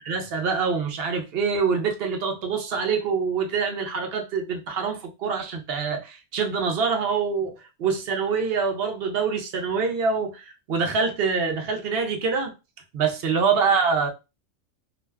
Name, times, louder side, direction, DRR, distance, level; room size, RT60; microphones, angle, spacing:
voice 1, 0.1-12.5 12.9-14.1, right 5 dB, 60° right, 0.7 m, -25 dB
2.5 x 2.1 x 3.3 m
omnidirectional pair, 1.3 m